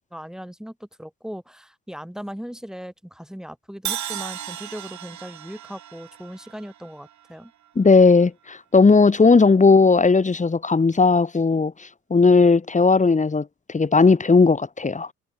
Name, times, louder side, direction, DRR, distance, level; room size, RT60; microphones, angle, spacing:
voice 1, 0.1-7.5, equal, ahead, 3.8 m, -38 dB
Crash cymbal, 3.8-7.9, right 11 dB, 70° right, 6.3 m, -35 dB
voice 2, 7.8-11.7 12.1-15.1, left 4 dB, 25° left, 2.1 m, -16 dB
cardioid pair, 90°, 30 cm